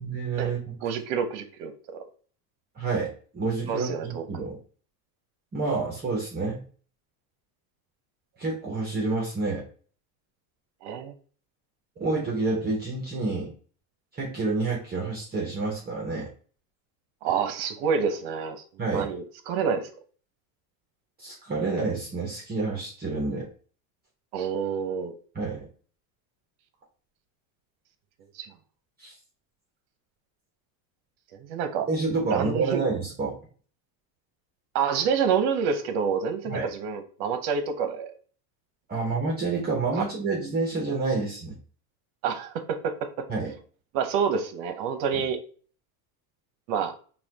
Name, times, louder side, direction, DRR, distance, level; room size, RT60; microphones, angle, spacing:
voice 1, 0.0-0.8 2.8-4.6 5.5-6.6 8.4-9.6 12.0-13.5 14.1-16.3 18.8-19.1 21.2-23.5 25.3-25.7 29.0-29.1 31.9-33.3 36.5-36.7 38.9-41.6 43.3-43.5 45.1-45.2, right 3 dB, 20° right, -2 dB, 0.8 m, -28 dB
voice 2, 0.8-1.7 3.7-4.5 10.8-11.1 17.2-18.6 18.8-19.9 24.3-25.1 28.4-28.5 31.5-31.9 32.3-32.8 34.7-38.1 42.2-43.1 43.9-45.4 46.7-46.9, right 6 dB, 55° right, 8 dB, 0.8 m, -27 dB
5.6 x 2.3 x 2.8 m, 0.42 s
cardioid pair, 155°, 47 cm